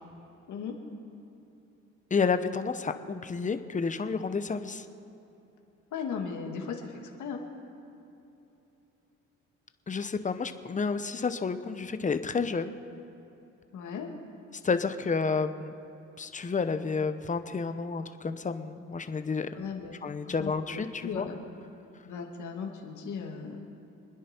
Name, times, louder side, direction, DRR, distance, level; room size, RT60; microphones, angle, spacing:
voice 1, 2.1-4.9 9.9-12.7 14.6-15.7 16.2-19.5 20.0-21.3, left 5 dB, 25° left, 10 dB, 0.8 m, -30 dB
voice 2, 5.9-7.4 13.7-14.1 19.5-20.0 20.2-21.4 22.0-23.7, left 6 dB, 75° left, 2 dB, 2.1 m, -37 dB
26.0 x 10.0 x 4.5 m, 2.9 s
cardioid pair, 90°, 30 cm